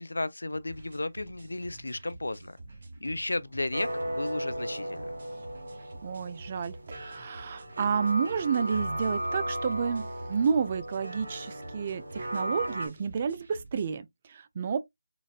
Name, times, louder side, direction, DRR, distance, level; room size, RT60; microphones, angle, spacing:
voice 1, 0.0-2.6 3.0-5.2, left 2 dB, 85° left, 0.4 m, -34 dB
sound 1, 0.5-13.9, right 2 dB, 50° right, 1.2 m, -49 dB
sound 2, 3.7-12.9, right 1 dB, 80° right, 1.3 m, -36 dB
voice 2, 6.0-14.8, right 6 dB, 30° right, 0.3 m, -30 dB
3.9 x 2.1 x 2.4 m
figure-of-eight pair, 165°, 0 cm